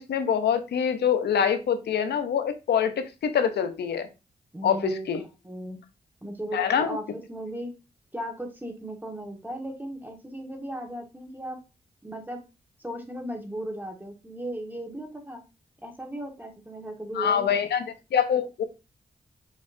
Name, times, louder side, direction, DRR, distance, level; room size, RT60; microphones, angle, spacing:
voice 1, 0.0-4.1 4.6-5.2 6.5-7.0 17.1-17.8 18.1-18.6, left 8 dB, 85° left, 10 dB, 0.6 m, -25 dB
voice 2, 4.5-5.1 5.4-5.8 6.2-7.7 8.1-11.6 12.0-12.4 12.8-15.4 15.8-17.6, right 1 dB, 10° right, 3 dB, 1.4 m, -36 dB
5.2 x 3.1 x 2.6 m, 0.28 s
cardioid pair, 50°, 17 cm